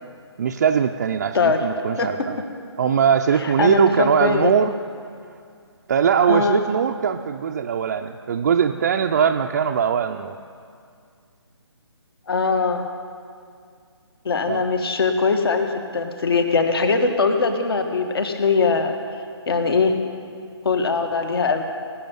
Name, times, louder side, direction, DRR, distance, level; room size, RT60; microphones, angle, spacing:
voice 1, 0.4-2.4 2.8-4.7 5.9-10.4 14.5-14.6, right 7 dB, 35° right, 2 dB, 0.5 m, -21 dB
voice 2, 3.4-4.5 6.3-6.6 12.3-12.8 14.2-18.9 19.5-20.0 20.6-21.6, left 4 dB, 55° left, 6 dB, 1.7 m, -21 dB
18.0 x 6.8 x 9.2 m, 2.2 s
figure-of-eight pair, 150°, 15 cm